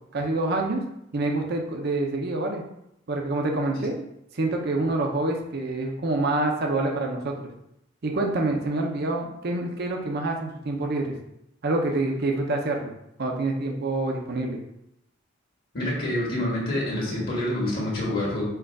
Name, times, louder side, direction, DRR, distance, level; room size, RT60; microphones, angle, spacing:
voice 1, 0.1-0.8 1.1-2.6 3.1-4.0 4.3-7.5 8.0-11.2 11.6-12.9 13.2-14.6, right 2 dB, 55° right, 1 dB, 0.7 m, -26 dB
voice 2, 15.7-18.4, left 1 dB, 50° left, -5 dB, 1.6 m, -27 dB
4.6 x 2.4 x 4.8 m, 0.81 s
head